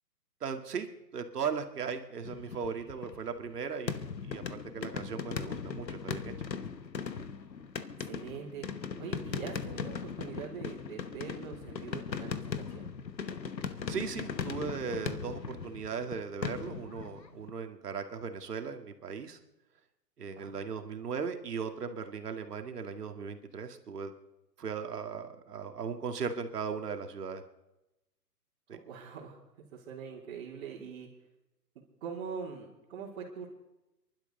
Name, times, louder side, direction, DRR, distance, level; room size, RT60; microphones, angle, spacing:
voice 1, 0.4-0.9 1.1-6.3 13.9-19.4 20.2-24.1 24.6-27.4 28.7-28.8, right 6 dB, 70° right, 6 dB, 2.1 m, -37 dB
sound 1, 2.2-3.5 3.9-17.5, left 6 dB, 85° left, 1.3 m, -39 dB
voice 2, 8.0-8.6 9.0-12.9 20.4-20.5 28.8-31.1 32.0-33.5, right 6 dB, 40° right, -7 dB, 3.2 m, -43 dB
28.5 x 12.0 x 3.9 m, 0.95 s
hypercardioid pair, 140°, 49 cm